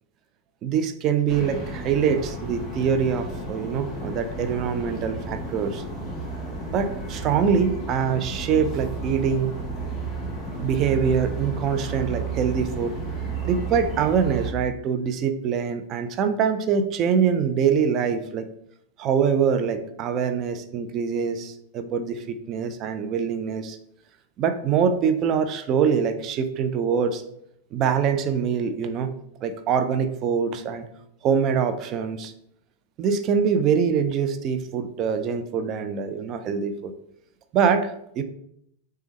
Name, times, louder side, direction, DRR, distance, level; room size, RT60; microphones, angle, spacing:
voice 1, 0.6-5.8 6.7-9.6 10.6-13.0 13.4-18.5 19.0-23.8 24.4-27.2 27.7-30.9 31.2-32.3 33.0-36.9 37.5-38.2, right 7 dB, 40° right, 8 dB, 0.4 m, -24 dB
sound 1, 1.3-14.5, right 3 dB, 15° left, 1.0 m, -32 dB
3.3 x 2.2 x 3.2 m, 0.73 s
hypercardioid pair, 95°, 0 cm